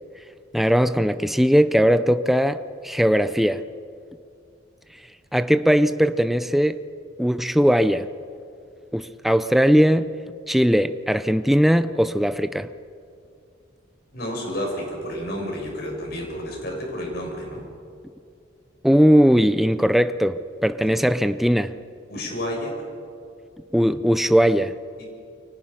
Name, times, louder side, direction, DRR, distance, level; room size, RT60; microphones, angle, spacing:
voice 1, 0.5-3.6 5.3-6.8 7.2-8.1 8.9-10.1 10.5-12.7 18.8-21.7 23.7-24.7, equal, ahead, 11 dB, 0.5 m, -19 dB
voice 2, 14.1-17.6 22.1-22.7 25.0-25.1, equal, 55° left, 0 dB, 7.0 m, -30 dB
29.5 x 24.0 x 5.6 m, 2.4 s
head